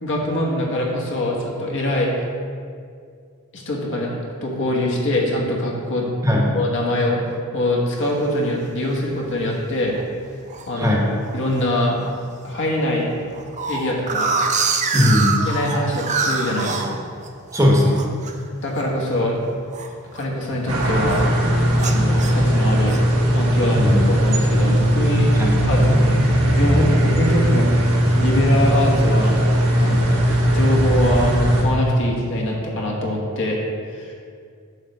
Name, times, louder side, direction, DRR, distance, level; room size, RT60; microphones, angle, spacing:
voice 1, 0.0-2.1 3.5-6.1 6.3-10.0 10.7-11.0 11.3-12.0 12.4-13.1 13.7-14.4 15.4-17.0 18.6-19.4 20.1-21.2 21.7-23.0 23.3-25.3 25.7-26.2 26.4-29.4 29.8-33.6 33.9-34.1, left 1 dB, 60° left, -2 dB, 1.4 m, -23 dB
sound 1, 8.0-8.4 8.9-9.0 9.2-9.6 9.9-10.7 11.2-11.6 12.0-12.1 12.3-12.4 12.8-17.6 17.9-20.5 20.7-21.3 21.7-23.1, right 4 dB, 35° right, 0.5 m, -26 dB
voice 2, 10.8-11.1 14.9-15.3 17.5-18.0 23.7-24.0 25.3-25.5, left 1 dB, 15° right, -2 dB, 1.0 m, -17 dB
sound 2, 20.7-31.6, equal, 85° right, 1.3 m, -18 dB
9.0 x 3.2 x 6.6 m, 2.2 s
head